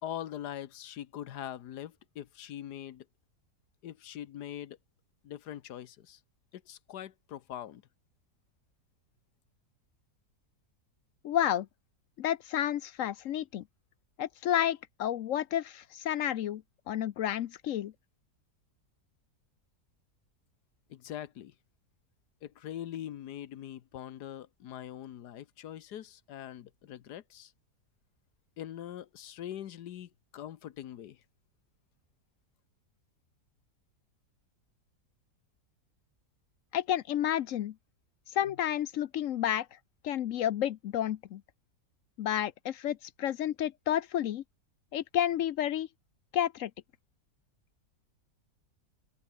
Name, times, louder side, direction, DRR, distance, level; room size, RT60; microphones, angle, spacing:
voice 1, 0.0-3.0 3.8-4.8 5.2-6.2 6.5-7.8 20.9-21.5 22.4-27.5 28.6-31.2, left 11 dB, 80° left, 1.5 m, -42 dB
voice 2, 11.2-11.7 12.2-13.6 14.2-16.6 16.9-17.9 36.7-37.7 38.3-39.7 40.0-41.4 42.2-44.4 44.9-45.9 46.3-46.7, left 11 dB, 65° left, 0.9 m, -30 dB
open air
omnidirectional pair, 1.7 m